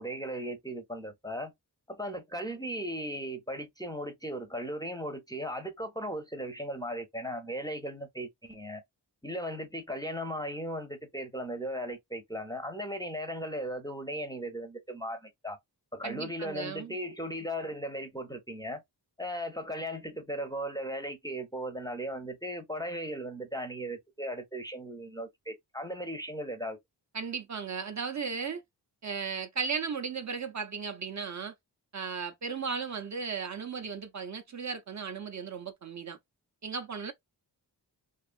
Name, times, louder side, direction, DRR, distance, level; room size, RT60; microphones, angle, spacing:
voice 1, 0.0-1.5 1.9-8.8 9.2-15.6 15.9-18.8 19.2-26.8, equal, 10° left, 0.5 m, -37 dB
voice 2, 16.0-16.9 27.1-28.6 29.0-31.5 31.9-36.2 36.6-37.1, right 5 dB, 45° right, 0.5 m, -36 dB
2.4 x 2.4 x 2.4 m
wide cardioid pair, 80°, 42 cm